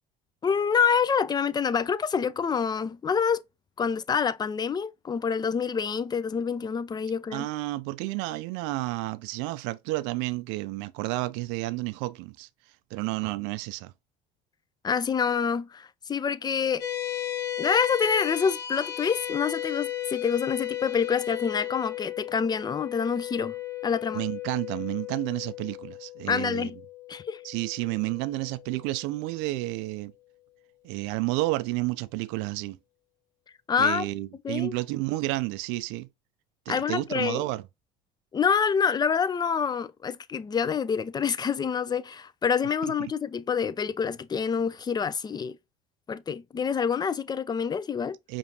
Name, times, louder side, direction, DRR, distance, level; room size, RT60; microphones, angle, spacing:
voice 1, 0.4-3.4 3.8-7.5 14.8-16.8 17.6-23.5 23.8-24.2 26.3-26.8 27.1-27.4 33.7-34.1 34.4-34.7 36.7-37.4 38.3-45.6 46.1-48.2, left 6 dB, 20° left, 0.4 m, -27 dB
voice 2, 7.3-12.5 12.9-13.9 24.1-26.7 27.4-30.1 30.8-32.8 33.8-36.1 36.7-37.6 42.8-42.9 48.3-48.4, right 19 dB, 75° right, 0.4 m, -31 dB
sound 1, 16.8-29.4, left 11 dB, 90° left, 1.0 m, -35 dB
5.2 x 2.5 x 2.8 m
supercardioid pair, 80°, 20 cm